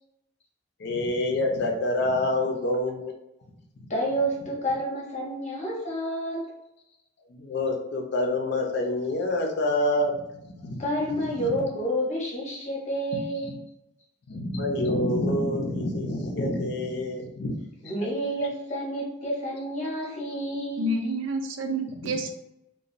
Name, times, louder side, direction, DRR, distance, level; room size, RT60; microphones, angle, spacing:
voice 1, 0.8-3.1 3.8-3.9 7.3-10.1 10.4-10.8 11.2-11.5 13.1-13.5 14.3-17.6 18.0-18.1 22.0-22.1, left 1 dB, 60° left, 1 dB, 0.5 m, -27 dB
voice 2, 3.9-6.4 10.8-13.5 17.8-20.9, equal, 35° left, -3 dB, 0.8 m, -29 dB
voice 3, 20.8-22.3, right 1 dB, 80° right, 5 dB, 0.4 m, -28 dB
2.9 x 2.2 x 2.5 m, 0.85 s
head